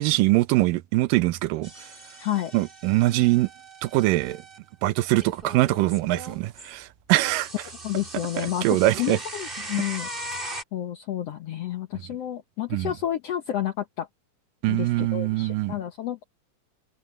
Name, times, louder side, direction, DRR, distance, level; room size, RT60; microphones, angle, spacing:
voice 1, 0.0-1.9 2.5-3.5 3.8-4.4 4.8-7.5 8.4-9.2 12.7-12.9 14.6-15.7, right 18 dB, 85° right, 2.3 m, -23 dB
sound 1, 1.6-4.6 5.2-6.7 7.2-10.6, right 1 dB, 15° right, 2.6 m, -39 dB
voice 2, 2.2-2.5 7.8-10.4 10.7-14.1 14.7-16.2, left 12 dB, 70° left, 1.5 m, -30 dB
omnidirectional pair, 4.0 m